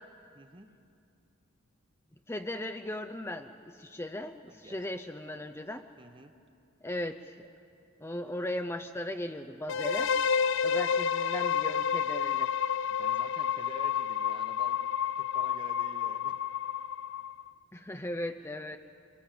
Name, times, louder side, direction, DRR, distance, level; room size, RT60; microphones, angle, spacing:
voice 1, 0.3-0.7 4.5-4.9 6.0-6.3 12.9-16.4, right 2 dB, 25° right, 7 dB, 1.1 m, -50 dB
voice 2, 2.3-5.9 6.8-7.4 8.0-10.1 10.6-12.5 17.7-18.8, left 1 dB, 10° left, 6 dB, 0.6 m, -37 dB
sound 1, 9.7-17.5, left 7 dB, 60° left, 0.5 m, -30 dB
25.5 x 23.0 x 7.7 m, 2.5 s
head